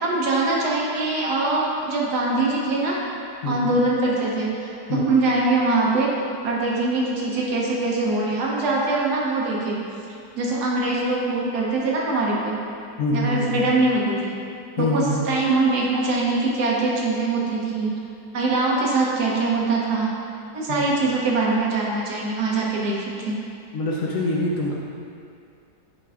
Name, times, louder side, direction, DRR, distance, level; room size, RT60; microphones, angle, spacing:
voice 1, 0.0-3.0 3.4-6.1 6.4-9.8 10.4-12.6 13.1-14.3 14.8-17.9 18.3-20.1 20.5-23.4, right 2 dB, 75° right, -4 dB, 1.5 m, -23 dB
voice 2, 3.4-3.8 4.9-5.1 13.0-13.7 14.8-15.3 20.7-20.8 23.7-24.7, left 2 dB, 60° left, -4 dB, 0.9 m, -25 dB
9.1 x 4.5 x 2.4 m, 2.5 s
omnidirectional pair, 1.8 m